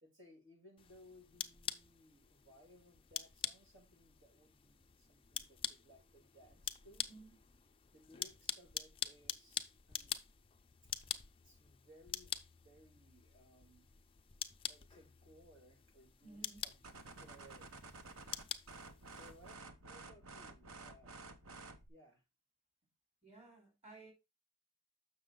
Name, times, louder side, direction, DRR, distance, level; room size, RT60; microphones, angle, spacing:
voice 1, 0.0-7.1 7.9-10.2 11.4-13.9 14.7-16.7 17.2-17.7 19.1-21.2 21.9-22.2, equal, 60° right, 2.7 m, -63 dB
sound 1, 0.8-19.6, left 8 dB, 25° left, 0.5 m, -46 dB
voice 2, 16.2-16.6 23.2-24.1, right 3 dB, 30° right, 4.0 m, -56 dB
sound 2, 16.8-21.9, right 3 dB, 85° right, 1.1 m, -52 dB
7.3 x 6.2 x 3.9 m
head